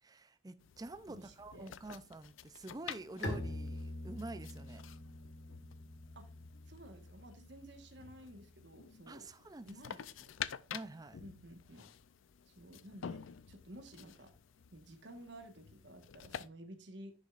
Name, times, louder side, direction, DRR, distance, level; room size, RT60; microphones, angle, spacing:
voice 1, 0.0-4.8 9.1-10.0 10.7-11.2, right 2 dB, 20° right, 12 dB, 0.4 m, -48 dB
sound 1, 0.6-16.5, left 8 dB, 90° left, 0.5 m, -50 dB
voice 2, 1.1-1.8 6.1-6.2 6.7-9.3 9.6-10.3 11.2-11.9 12.5-14.3 14.7-17.1, right 1 dB, 65° right, 6 dB, 1.4 m, -53 dB
Bowed string instrument, 3.2-8.8, left 1 dB, 60° left, 1.6 m, -45 dB
10.0 x 6.5 x 2.4 m, 0.33 s
head